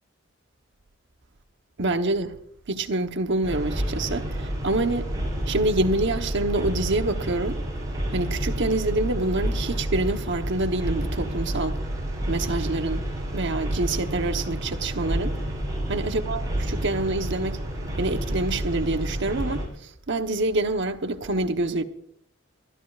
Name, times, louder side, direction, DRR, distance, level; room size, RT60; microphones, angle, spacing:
voice 1, 1.8-2.3 2.7-5.1 5.5-7.6 8.1-11.8 12.3-13.1 13.3-15.4 15.9-17.6 18.0-21.8, right 2 dB, 65° right, 1.1 m, -26 dB
sound 1, 3.4-19.7, right 1 dB, 20° right, 6.6 m, -29 dB
23.0 x 14.0 x 2.5 m
head